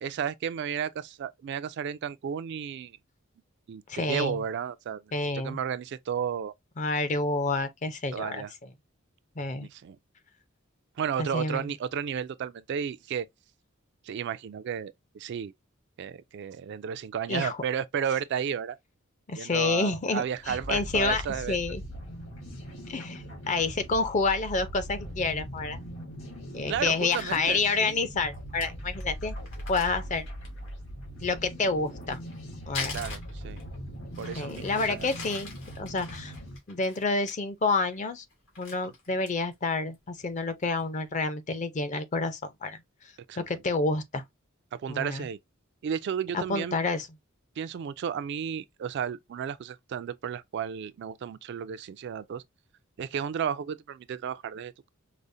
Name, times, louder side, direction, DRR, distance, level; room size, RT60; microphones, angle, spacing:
voice 1, 0.0-3.0 3.7-5.0 5.3-6.5 8.1-8.5 9.6-10.0 11.0-13.3 14.0-15.5 16.0-18.8 19.3-21.6 26.7-27.9 32.9-33.6 34.2-35.1 43.3-43.4 44.7-45.4 45.8-46.8 47.6-52.4 53.0-54.9, right 8 dB, 55° right, 0.3 m, -33 dB
voice 2, 3.9-4.4 5.1-5.6 6.8-8.5 9.4-9.7 11.2-11.7 17.3-17.6 19.3-21.2 21.5-21.8 22.9-25.8 26.5-29.4 29.7-30.3 31.2-32.2 32.7-33.0 34.4-36.3 36.7-38.2 38.6-42.8 43.4-44.2 44.9-45.3 46.3-47.1, left 3 dB, 35° left, 0.5 m, -29 dB
sound 1, 20.3-36.6, equal, 60° left, 1.5 m, -41 dB
Crumpling crinkling, 26.7-27.4 28.0-28.1 28.3-28.4 28.6-28.7 29.0-29.1 29.4-30.7 31.9-33.8 34.1-37.3 37.7-38.0 38.3-39.5 39.9-40.0 40.4-40.9, left 5 dB, 85° left, 2.3 m, -42 dB
4.9 x 2.0 x 2.6 m
head